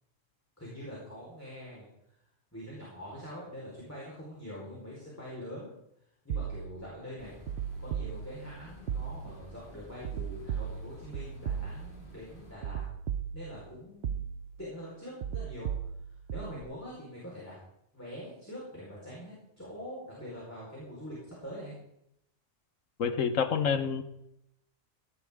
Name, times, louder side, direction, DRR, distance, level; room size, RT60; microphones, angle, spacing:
voice 1, 0.6-1.9 2.5-5.7 6.2-7.3 7.8-12.8 13.3-14.2 14.6-15.7 16.3-17.6 17.9-21.7, equal, 10° left, -6 dB, 4.5 m, -44 dB
sound 1, 6.3-6.9 7.5-8.5 8.9-9.5 10.0-12.1 12.6-13.7 14.0-14.7 15.2-16.6, right 8 dB, 65° right, 0.9 m, -36 dB
sound 2, 7.2-12.5, left 1 dB, 45° left, 3.2 m, -52 dB
voice 2, 23.0-24.0, left 6 dB, 85° left, 10 dB, 1.4 m, -28 dB
17.0 x 12.0 x 3.7 m, 0.80 s
omnidirectional pair, 1.3 m